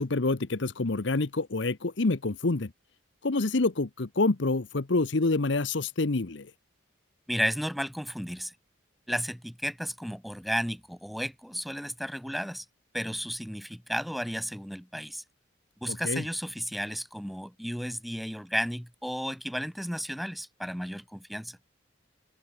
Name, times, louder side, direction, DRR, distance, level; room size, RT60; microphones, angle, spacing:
voice 1, 0.0-2.7 3.2-6.5 15.9-16.2, left 3 dB, 65° left, 0.9 m, -27 dB
voice 2, 7.3-8.5 9.1-12.7 12.9-15.2 15.8-21.6, equal, ahead, 7.8 m, -33 dB
head